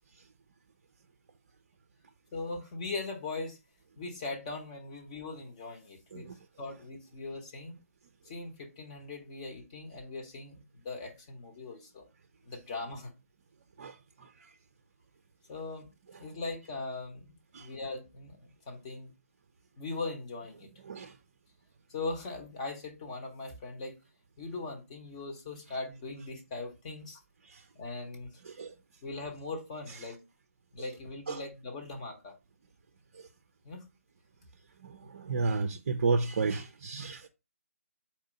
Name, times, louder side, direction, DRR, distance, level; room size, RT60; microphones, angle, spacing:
voice 1, 2.3-3.6 4.0-6.3 6.6-7.7 8.2-12.0 12.4-13.1 15.5-15.9 16.2-17.3 17.6-19.1 19.8-20.7 21.9-24.0 24.4-27.2 27.7-28.4 29.0-30.2 30.7-32.3 33.6-33.9, left 3 dB, 25° left, 1.1 m, -40 dB
voice 2, 13.8-14.3 17.5-17.7 20.9-21.1 27.5-27.6 28.4-28.7 31.3-31.4 33.1-33.3 34.8-37.3, right 4 dB, 45° right, 0.5 m, -32 dB
4.3 x 2.7 x 3.9 m
figure-of-eight pair, 155°, 8 cm